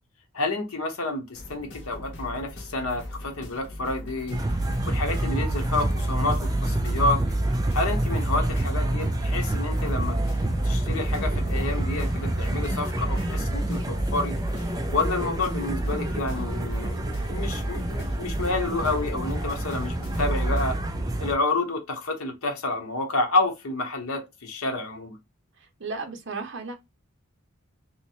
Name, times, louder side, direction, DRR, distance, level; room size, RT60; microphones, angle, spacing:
voice 1, 0.3-4.4 4.9-7.2 7.7-10.2 10.6-14.4 14.9-17.0 17.3-20.7 21.2-25.2, left 2 dB, 90° left, 1.0 m, -29 dB
sound 1, 1.3-20.6, left 1 dB, 55° left, 0.8 m, -42 dB
sound 2, 1.9-18.1, left 1 dB, 25° left, 0.8 m, -43 dB
sound 3, 4.3-21.3, right 1 dB, 15° right, 0.4 m, -27 dB
voice 2, 25.8-26.8, right 3 dB, 55° right, 0.8 m, -34 dB
3.2 x 2.9 x 2.8 m
head